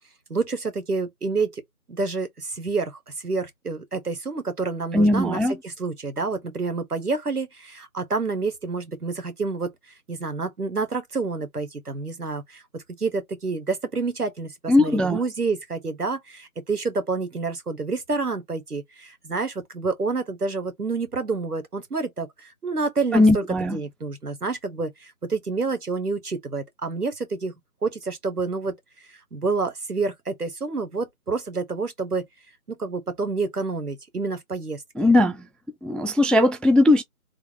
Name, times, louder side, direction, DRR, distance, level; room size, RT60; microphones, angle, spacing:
voice 1, 0.3-1.6 1.9-9.7 10.1-23.4 23.7-27.5 27.8-28.7 29.1-32.3 32.7-35.1, right 4 dB, 85° right, 1.6 m, -28 dB
voice 2, 4.9-5.6 14.7-15.2 23.1-23.8 35.0-35.4 35.8-37.0, left 1 dB, ahead, 0.3 m, -19 dB
3.5 x 2.1 x 3.6 m
figure-of-eight pair, 160°, 45 cm